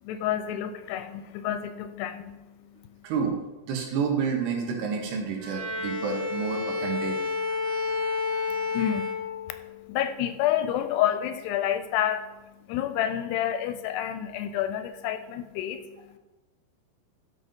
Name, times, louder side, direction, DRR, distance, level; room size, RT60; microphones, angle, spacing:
voice 1, 0.0-3.1 8.5-16.2, left 10 dB, 90° left, 10 dB, 2.7 m, -30 dB
voice 2, 3.0-3.4 3.7-7.2, right 6 dB, 75° right, 1 dB, 3.6 m, -29 dB
Bowed string instrument, 5.4-9.8, left 4 dB, 40° right, 1.6 m, -30 dB
11.5 x 6.1 x 5.3 m, 1.1 s
omnidirectional pair, 4.8 m